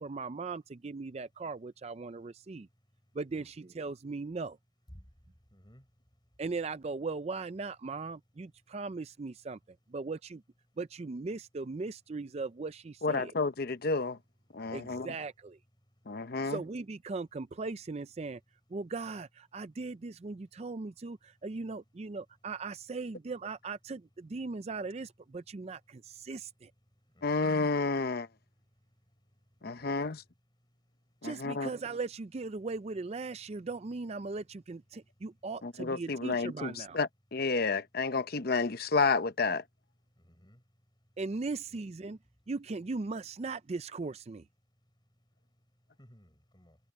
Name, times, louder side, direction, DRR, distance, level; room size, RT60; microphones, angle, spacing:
voice 1, 0.0-2.7 3.1-4.6 6.4-9.6 9.9-10.4 10.8-13.3 14.7-15.6 16.4-18.4 18.7-26.7 31.2-37.0 41.2-42.2 42.5-44.4, right 3 dB, 35° right, 0.4 m, -38 dB
voice 2, 5.5-5.8 14.6-15.1 27.2-27.5 29.8-30.1 40.2-40.6 41.7-41.8 46.0-46.8, equal, 20° left, 6.0 m, -58 dB
voice 3, 13.0-14.2 14.5-15.1 16.1-16.6 27.2-28.3 29.6-30.2 31.2-31.7 35.6-39.6, left 4 dB, 50° left, 0.8 m, -30 dB
head